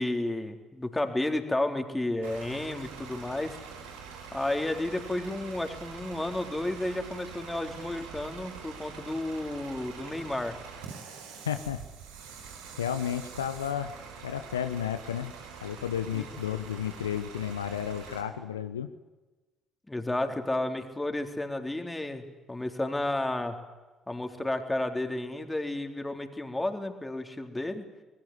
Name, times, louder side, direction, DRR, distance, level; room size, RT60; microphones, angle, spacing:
voice 1, 0.0-3.6 4.3-10.6 16.1-16.3 19.9-22.2 22.5-23.6 24.1-27.9, left 1 dB, 15° left, 5 dB, 3.8 m, -32 dB
Bus / Idling, 2.2-18.2, right 6 dB, 80° right, 4.0 m, -45 dB
voice 2, 11.4-11.8 12.8-14.0 14.2-15.3 15.6-18.9, left 9 dB, 85° left, 10 dB, 0.9 m, -32 dB
25.5 x 20.5 x 9.7 m, 1.2 s
hypercardioid pair, 50°, 0 cm